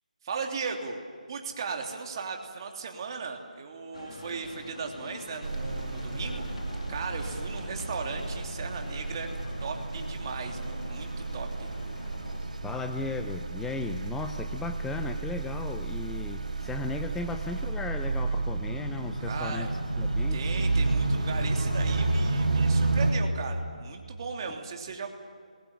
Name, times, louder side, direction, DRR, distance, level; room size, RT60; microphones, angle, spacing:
voice 1, 0.2-1.0 1.3-6.4 6.9-9.3 9.6-11.7 19.2-19.7 20.3-25.1, right 5 dB, 35° right, 2 dB, 3.1 m, -37 dB
sound 1, 3.9-12.5, left 3 dB, 55° left, 2.5 m, -45 dB
sound 2, 5.4-23.1, right 3 dB, 60° right, 6.7 m, -31 dB
voice 2, 12.6-20.5, left 4 dB, 5° left, 6 dB, 0.5 m, -36 dB
27.0 x 21.5 x 7.3 m, 2.2 s
figure-of-eight pair, 160°, 4 cm